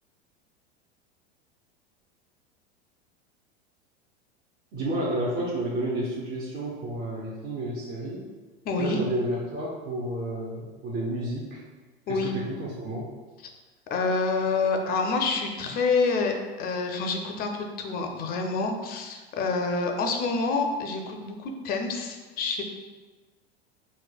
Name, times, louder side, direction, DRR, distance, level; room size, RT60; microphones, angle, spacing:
voice 1, 4.7-8.3 8.8-11.6 12.1-13.1, right 1 dB, 30° right, -5 dB, 0.6 m, -31 dB
voice 2, 8.6-9.0 12.1-12.3 13.9-22.6, left 4 dB, 30° left, 3 dB, 0.4 m, -27 dB
4.4 x 2.1 x 2.3 m, 1.3 s
hypercardioid pair, 95°, 32 cm